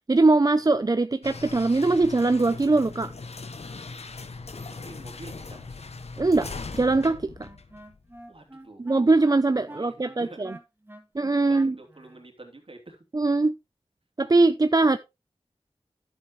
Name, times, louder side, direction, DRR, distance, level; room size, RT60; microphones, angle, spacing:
voice 1, 0.1-3.1 6.2-6.5 6.7-7.5 8.8-10.5 11.1-11.7 13.1-13.5 14.2-15.0, right 3 dB, 35° right, 0.5 m, -21 dB
sound 1, 1.2-8.2, left 3 dB, 85° left, 1.0 m, -40 dB
voice 2, 4.8-5.8 8.3-9.1 9.5-10.6 11.5-13.0, right 2 dB, 60° right, 2.9 m, -47 dB
Wind instrument woodwind instrument, 6.6-12.3, right 1 dB, 20° right, 1.9 m, -47 dB
11.0 x 7.7 x 3.1 m
wide cardioid pair, 55°, 11 cm